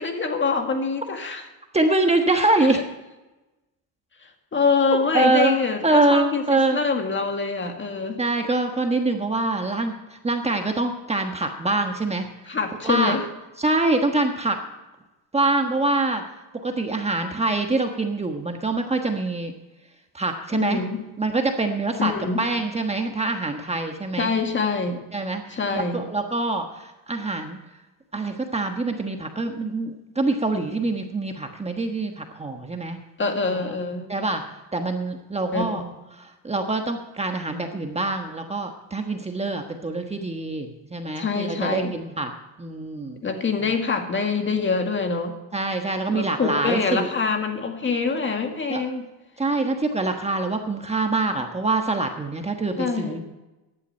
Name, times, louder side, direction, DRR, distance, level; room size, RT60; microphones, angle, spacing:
voice 1, 0.0-1.4 2.7-2.8 4.5-8.2 12.5-13.2 20.5-21.0 22.0-22.4 24.2-25.0 25.5-26.0 33.2-34.1 35.5-35.9 41.2-42.0 43.2-45.4 46.1-49.0 52.8-53.2, left 4 dB, 30° left, 5 dB, 2.0 m, -25 dB
voice 2, 1.7-2.8 5.1-5.6 5.8-6.8 8.2-12.3 12.8-13.2 13.6-14.6 15.3-16.2 16.6-19.5 20.1-20.8 21.2-22.1 22.4-24.3 25.1-27.6 28.1-33.0 33.5-33.6 34.1-34.4 34.7-35.8 36.4-42.3 42.6-43.2 45.5-47.1 48.7-48.8 49.4-53.2, right 2 dB, 15° right, 4 dB, 1.3 m, -24 dB
14.5 x 11.0 x 4.4 m, 1.1 s
supercardioid pair, 100°, 41 cm